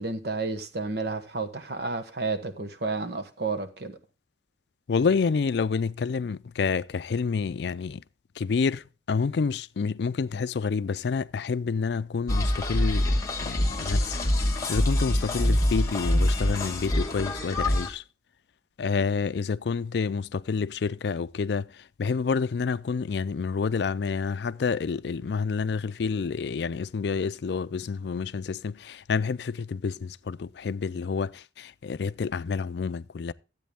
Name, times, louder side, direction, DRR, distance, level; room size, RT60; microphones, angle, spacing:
voice 1, 0.0-3.9, right 3 dB, 60° right, 1.2 m, -31 dB
voice 2, 4.9-8.0 8.4-8.8 9.1-13.1 13.4-14.2 14.7-18.0 18.8-21.6 22.0-33.3, left 5 dB, 65° left, 0.4 m, -28 dB
sound 1, 12.3-17.9, left 1 dB, 20° left, 1.5 m, -25 dB
13.0 x 8.4 x 3.5 m
head